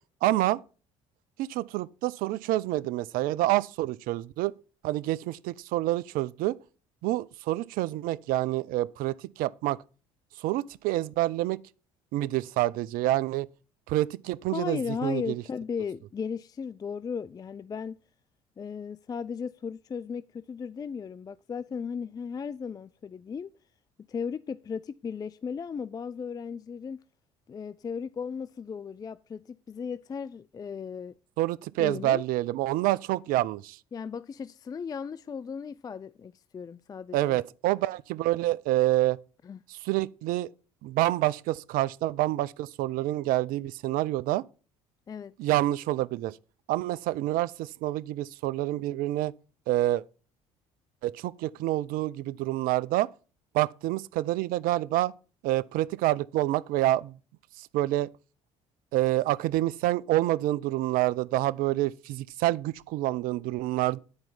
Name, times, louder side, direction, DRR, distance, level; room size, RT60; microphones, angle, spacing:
voice 1, 0.2-0.6 1.4-4.5 4.8-6.5 7.0-9.8 10.4-11.6 12.1-13.5 13.9-15.4 31.4-33.8 37.1-39.2 39.7-40.5 40.8-44.4 45.4-46.3 46.7-49.3 49.7-50.0 51.0-53.1 53.5-55.1 55.4-57.1 57.6-58.1 58.9-64.0, right 16 dB, 60° right, 0.4 m, -27 dB
voice 2, 14.5-18.0 18.6-23.5 24.1-27.0 27.5-31.2 31.8-32.2 33.9-37.4 39.4-39.6 45.1-45.4, left 6 dB, 25° left, 0.3 m, -36 dB
10.5 x 4.4 x 5.4 m
hypercardioid pair, 60°, 16 cm